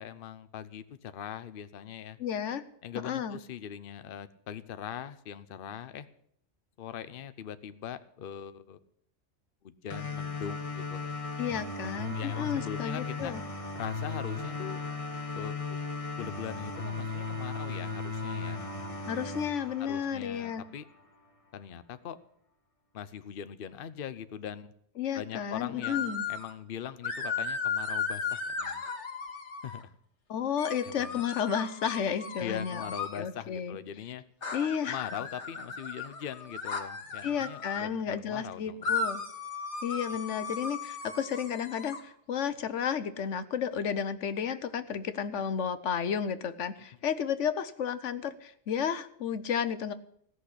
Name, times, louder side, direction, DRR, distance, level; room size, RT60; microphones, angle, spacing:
voice 1, 0.0-2.2 2.8-6.1 6.8-8.8 9.6-11.2 11.8-11.9 12.1-13.3 13.8-14.8 15.3-15.8 16.2-18.6 19.8-20.9 21.5-22.2 22.9-24.7 25.1-28.8 29.6-29.9 30.8-31.2 32.4-34.2 34.8-39.0 40.1-40.2, left 9 dB, 55° left, 13 dB, 0.9 m, -41 dB
voice 2, 2.2-2.6 3.0-3.4 11.4-13.4 19.1-20.6 25.0-26.2 30.3-32.8 33.1-33.8 34.5-35.1 37.2-39.2 39.8-49.9, left 7 dB, 90° left, 12 dB, 1.2 m, -32 dB
sound 1, 9.9-20.9, left 4 dB, 30° left, 1.8 m, -37 dB
sound 2, 25.8-26.5 27.0-29.8 30.6-33.2 34.4-37.8 38.8-42.0, left 5 dB, 70° left, 1.8 m, -36 dB
16.5 x 6.4 x 10.0 m, 0.69 s
omnidirectional pair, 1.2 m